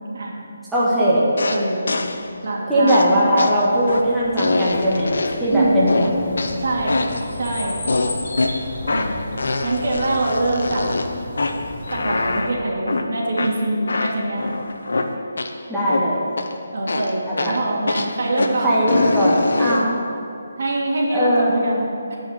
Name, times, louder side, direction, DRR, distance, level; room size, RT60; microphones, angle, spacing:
voice 1, 0.7-1.2 2.7-5.1 5.4-6.1 15.7-16.2 17.3-17.5 18.6-19.9 21.1-21.5, equal, 5° right, -10 dB, 1.6 m, -19 dB
sound 1, 1.4-2.3 2.9-5.5 5.9-7.3 7.9-15.6 15.9-16.6 16.9-20.0, left 2 dB, 75° left, 0.8 m, -24 dB
voice 2, 1.5-2.0 2.4-3.0 5.5-5.9 6.6-7.8 8.9-9.2 9.6-11.0 11.9-14.6 16.7-18.8 20.6-22.2, right 2 dB, 60° right, -3 dB, 2.7 m, -24 dB
sound 2, 3.0-12.4, left 1 dB, 50° left, 3.0 m, -34 dB
11.0 x 5.5 x 8.4 m, 2.6 s
hypercardioid pair, 160°, 0 cm